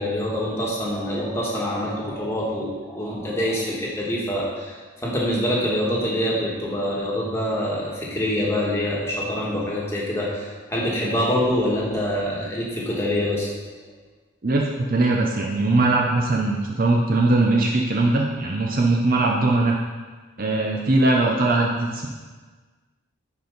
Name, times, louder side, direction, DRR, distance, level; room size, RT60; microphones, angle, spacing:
voice 1, 0.0-13.5, equal, 15° left, -4 dB, 1.5 m, -25 dB
voice 2, 14.4-19.8 20.4-22.1, right 2 dB, 45° right, 0 dB, 0.6 m, -20 dB
10.5 x 4.5 x 3.9 m, 1.4 s
head